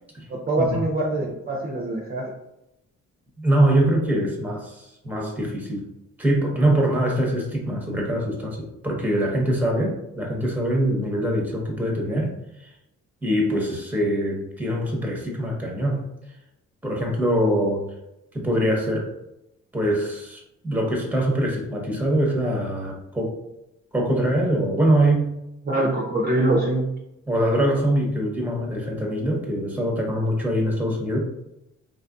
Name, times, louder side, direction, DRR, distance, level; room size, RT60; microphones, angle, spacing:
voice 1, 0.3-2.3 25.6-26.9, right 2 dB, 30° right, -2 dB, 0.6 m, -24 dB
voice 2, 3.4-5.9 6.2-12.3 12.6-12.7 13.2-16.0 16.8-17.9 18.3-19.1 19.7-23.4 23.9-25.4 27.3-31.2, right 1 dB, 5° right, 0 dB, 0.9 m, -23 dB
3.3 x 2.5 x 2.3 m, 0.86 s
cardioid pair, 90°, 30 cm